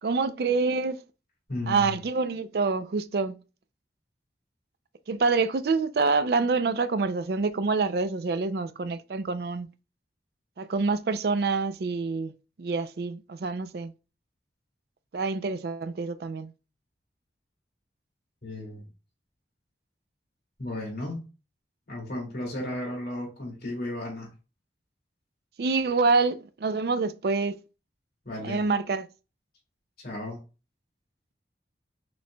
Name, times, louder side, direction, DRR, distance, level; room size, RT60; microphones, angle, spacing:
voice 1, 0.0-1.0 1.7-3.4 5.1-9.7 10.6-12.3 12.6-13.9 15.1-16.5 25.6-27.6 28.4-29.1, right 4 dB, 60° right, 0.4 m, -26 dB
voice 2, 1.5-2.0 18.4-18.8 20.6-21.2 21.9-24.3 28.2-28.6 30.0-30.4, left 1 dB, 60° left, 2.3 m, -34 dB
6.2 x 3.1 x 2.2 m
head